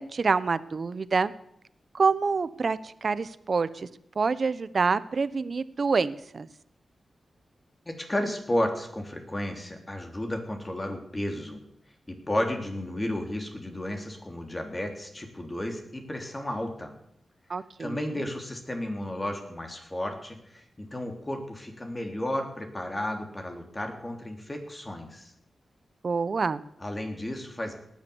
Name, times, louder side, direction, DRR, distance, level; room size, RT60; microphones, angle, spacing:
voice 1, 0.0-1.3 1.9-3.9 4.2-6.5 17.5-18.2 26.0-26.6, right 4 dB, 55° right, 16 dB, 0.9 m, -27 dB
voice 2, 7.9-11.6 12.1-16.9 17.8-25.3 26.8-27.7, left 1 dB, 25° left, 3 dB, 3.6 m, -33 dB
18.5 x 10.5 x 7.2 m, 0.75 s
cardioid pair, 65°, 0 cm